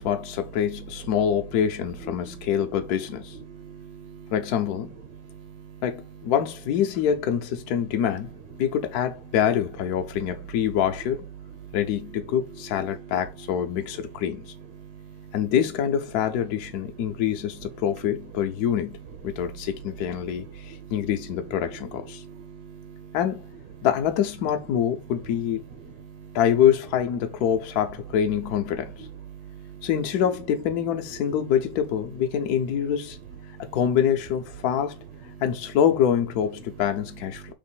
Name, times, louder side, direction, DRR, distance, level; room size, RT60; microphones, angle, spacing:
voice 1, 0.0-3.3 4.3-4.9 5.8-8.3 8.6-11.3 11.7-14.5 15.3-19.0 19.2-22.2 23.1-23.4 23.8-25.6 26.3-28.9 29.8-33.2 33.6-35.0 35.4-37.4, left 9 dB, 65° left, 1.0 m, -25 dB
voice 2, 3.5-4.3 5.1-5.8 11.6-11.8 14.8-15.3 20.6-20.9 22.1-23.2 26.0-26.4 29.3-29.9 33.5-33.8 37.4-37.5, right 8 dB, 60° right, 1.3 m, -44 dB
3.4 x 3.0 x 4.4 m
omnidirectional pair, 2.2 m